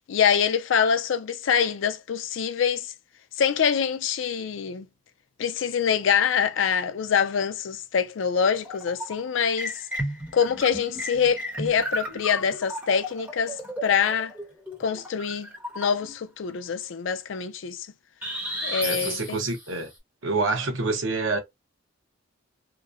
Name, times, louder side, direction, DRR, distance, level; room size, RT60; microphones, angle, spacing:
voice 1, 0.1-2.9 3.4-4.9 5.4-9.7 10.3-14.3 14.8-15.5 15.8-17.9 18.6-19.4, left 7 dB, 70° left, 0.4 m, -25 dB
sound 1, 8.4-9.2 9.6-16.2 18.2-19.8, equal, 10° right, 1.0 m, -34 dB
voice 2, 18.8-19.9 20.2-21.4, right 3 dB, 75° right, 0.8 m, -27 dB
2.8 x 2.1 x 2.4 m
head